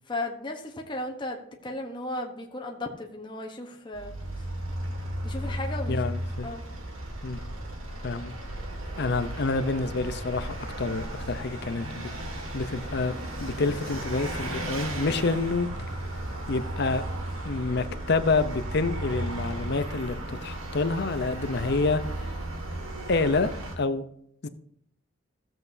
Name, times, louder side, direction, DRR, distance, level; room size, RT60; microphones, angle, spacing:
voice 1, 0.1-4.5 5.2-6.7, left 2 dB, 25° left, 1 dB, 1.0 m, -36 dB
Vehicle, 3.9-23.7, right 1 dB, 85° right, 1.9 m, -35 dB
voice 2, 5.9-6.5 7.2-7.4 8.0-8.3 9.0-12.1 12.5-13.1 13.4-15.7 16.5-17.0 17.4-22.0 23.1-23.5 23.8-24.0 24.4-24.5, left 3 dB, 55° left, 11 dB, 0.6 m, -27 dB
15.0 x 7.6 x 2.7 m, 0.71 s
head